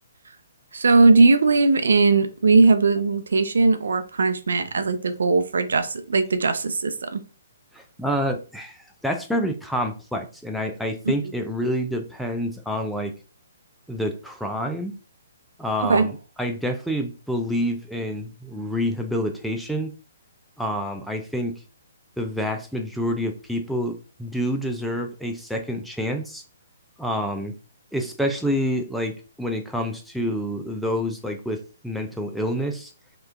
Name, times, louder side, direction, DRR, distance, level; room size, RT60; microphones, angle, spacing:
voice 1, 0.7-7.2 15.8-16.1, right 3 dB, 80° right, 10 dB, 0.6 m, -19 dB
voice 2, 7.7-13.1 13.9-14.9 15.6-19.9 20.6-21.5 22.2-26.4 27.0-27.5 27.9-32.9, equal, ahead, 3 dB, 0.5 m, -28 dB
3.2 x 3.0 x 3.6 m, 0.34 s
hypercardioid pair, 145°, 0 cm